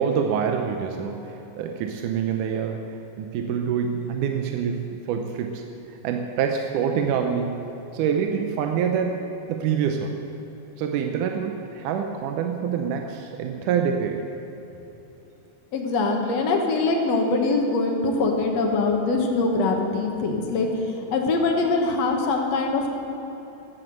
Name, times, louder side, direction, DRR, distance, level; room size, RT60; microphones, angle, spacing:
voice 1, 0.0-5.6 6.0-7.6 7.9-9.2 9.5-10.1 10.8-14.3, right 7 dB, 80° right, 3 dB, 2.2 m, -26 dB
voice 2, 15.7-22.9, left 3 dB, 60° left, 2 dB, 2.1 m, -23 dB
13.5 x 8.7 x 7.6 m, 3.0 s
omnidirectional pair, 3.7 m